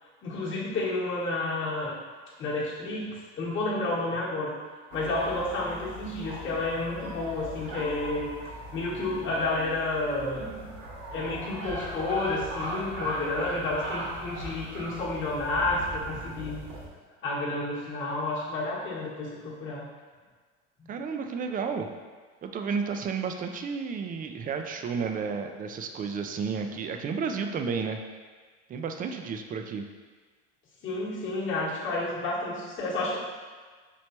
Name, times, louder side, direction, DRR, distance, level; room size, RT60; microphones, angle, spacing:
voice 1, 0.2-2.0 2.4-4.5 4.9-8.3 8.7-10.6 11.1-16.6 17.2-19.9 20.8-21.0 30.8-33.2, left 2 dB, 35° left, -6 dB, 1.2 m, -30 dB
sound 1, 4.9-16.9, right 1 dB, 55° right, 1.2 m, -39 dB
voice 2, 20.9-21.9 22.4-28.0 28.7-29.8, right 5 dB, 25° right, 5 dB, 0.4 m, -32 dB
4.4 x 3.2 x 3.0 m, 1.5 s
hypercardioid pair, 85°, 35 cm